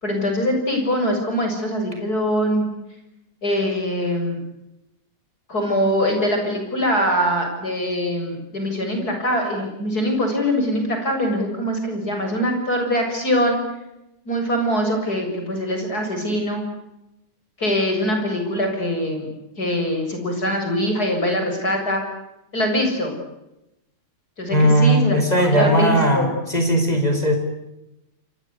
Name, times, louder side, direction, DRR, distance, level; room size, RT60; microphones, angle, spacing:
voice 1, 0.0-2.7 3.4-4.4 5.5-13.6 14.3-16.6 17.6-19.3 19.6-22.0 22.5-23.2 24.4-26.3, equal, 25° left, 3 dB, 7.7 m, -23 dB
voice 2, 24.5-27.4, right 1 dB, 10° left, 5 dB, 5.1 m, -18 dB
30.0 x 23.0 x 8.4 m, 0.90 s
omnidirectional pair, 3.6 m